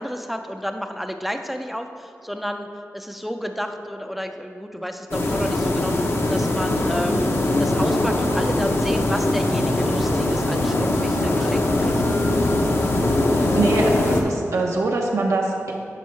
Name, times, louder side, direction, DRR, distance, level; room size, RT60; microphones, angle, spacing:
voice 1, 0.0-7.3 7.6-12.2, equal, ahead, 6 dB, 0.4 m, -31 dB
sound 1, 5.1-14.2, left 1 dB, 50° left, 0.7 m, -21 dB
voice 2, 13.3-15.7, right 2 dB, 75° right, -1 dB, 0.6 m, -23 dB
9.8 x 5.4 x 3.2 m, 2.6 s
wide cardioid pair, 115°, 5 cm